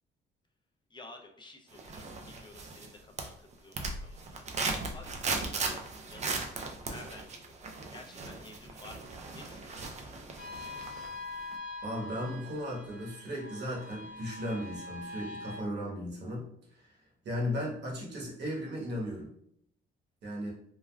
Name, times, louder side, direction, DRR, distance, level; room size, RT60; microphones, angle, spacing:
voice 1, 0.9-4.4 4.7-6.5 6.8-10.5, left 2 dB, 25° left, 3 dB, 0.5 m, -53 dB
sound 1, 1.8-2.9 3.2-11.2 11.5-11.6, right 3 dB, 35° right, 0.4 m, -37 dB
sound 2, 10.4-15.6, left 2 dB, 80° left, 1.0 m, -44 dB
voice 2, 11.8-16.5 16.7-17.0 17.2-19.3 20.2-20.5, equal, 60° right, -3 dB, 1.2 m, -36 dB
3.3 x 2.2 x 2.2 m, 0.68 s
cardioid pair, 90°, 20 cm